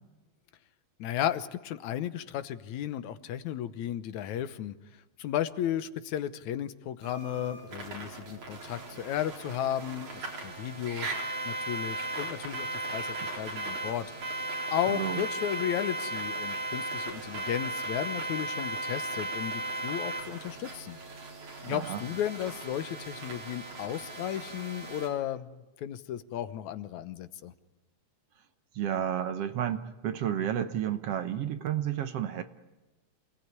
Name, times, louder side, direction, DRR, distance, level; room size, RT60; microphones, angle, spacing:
voice 1, 1.0-4.8 5.2-11.1 11.5-14.4 14.7-21.0 21.6-27.5, left 11 dB, 80° left, 13 dB, 2.4 m, -34 dB
sound 1, 7.0-25.1, right 2 dB, 80° right, 5.7 m, -37 dB
voice 2, 14.9-15.2 21.7-22.0 28.8-32.4, right 10 dB, 65° right, 10 dB, 1.9 m, -31 dB
27.5 x 18.5 x 9.7 m, 1.1 s
omnidirectional pair, 3.3 m